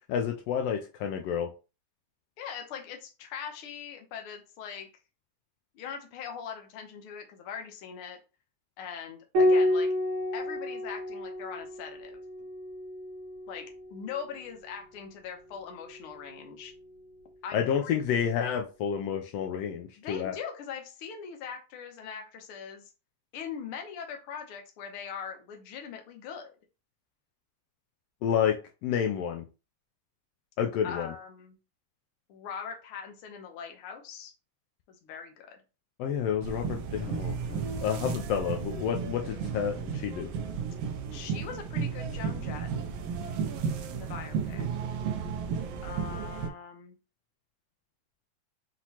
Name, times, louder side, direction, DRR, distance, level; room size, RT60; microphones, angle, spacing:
voice 1, 0.1-1.5 17.5-20.3 28.2-29.4 30.6-31.1 36.0-40.3, left 8 dB, 85° left, 3 dB, 1.4 m, -30 dB
voice 2, 2.4-4.9 5.7-8.2 8.8-9.9 10.3-12.2 13.5-13.6 13.9-16.7 17.4-18.0 20.0-22.9 23.3-26.6 30.8-31.6 32.3-34.3 34.9-35.6 41.1-42.7 43.9-44.6 45.8-47.0, left 7 dB, 70° left, 3 dB, 1.4 m, -41 dB
Piano, 9.3-14.2 15.8-16.6, left 1 dB, 50° right, 1.8 m, -30 dB
sound 1, 36.4-46.5, right 6 dB, 75° right, 1.4 m, -33 dB
5.8 x 3.0 x 2.8 m, 0.31 s
omnidirectional pair, 3.4 m